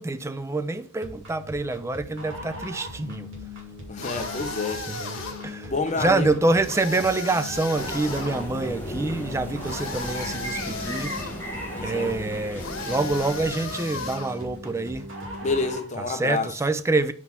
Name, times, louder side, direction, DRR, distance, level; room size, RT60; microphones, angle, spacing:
voice 1, 0.0-3.5 4.7-11.2 11.8-15.1 16.0-17.1, right 2 dB, 15° right, 0.3 m, -26 dB
sound 1, 1.0-16.0, left 1 dB, 65° right, 1.9 m, -39 dB
voice 2, 3.9-4.9 5.7-6.3 11.7-12.1 15.4-16.5, left 3 dB, 35° left, 0.7 m, -28 dB
sound 2, 4.0-5.5 6.6-8.4 9.6-11.4 12.6-14.4, left 3 dB, 65° left, 1.3 m, -35 dB
sound 3, 7.7-13.5, equal, 10° left, 1.2 m, -36 dB
4.7 x 3.9 x 5.5 m
head